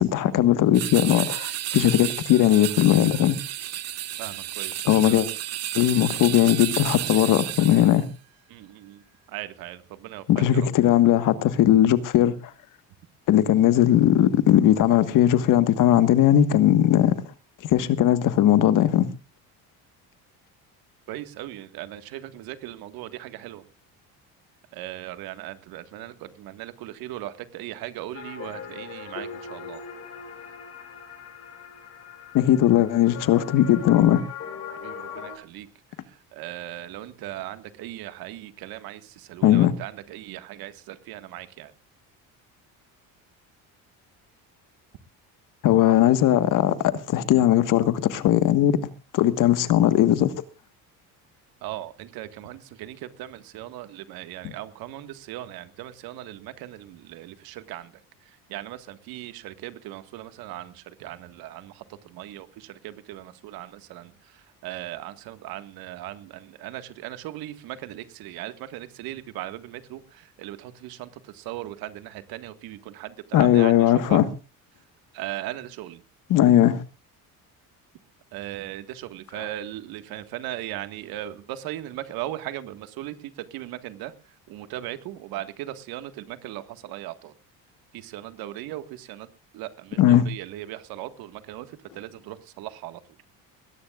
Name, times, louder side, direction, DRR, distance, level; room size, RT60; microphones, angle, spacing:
voice 1, 0.0-3.3 4.9-5.3 5.7-8.1 10.3-12.3 13.3-17.1 17.6-19.1 32.3-34.2 39.4-39.7 45.6-48.8 49.1-50.3 54.4-54.5 73.3-74.2 76.3-76.8 90.0-90.3, left 12 dB, 60° left, 1.5 m, -19 dB
sound 1, 0.7-8.1, right 12 dB, 45° right, 1.0 m, -32 dB
voice 2, 4.2-5.2 8.5-10.7 21.1-23.6 24.7-29.8 34.8-35.7 36.1-41.7 51.6-57.9 58.3-74.2 75.1-76.0 78.3-84.1 84.5-87.3 87.9-89.3 89.5-93.0, right 14 dB, 80° right, 1.8 m, -38 dB
sound 2, 28.1-35.3, left 6 dB, 40° left, 4.0 m, -39 dB
21.5 x 18.0 x 2.4 m
cardioid pair, 150°, 36 cm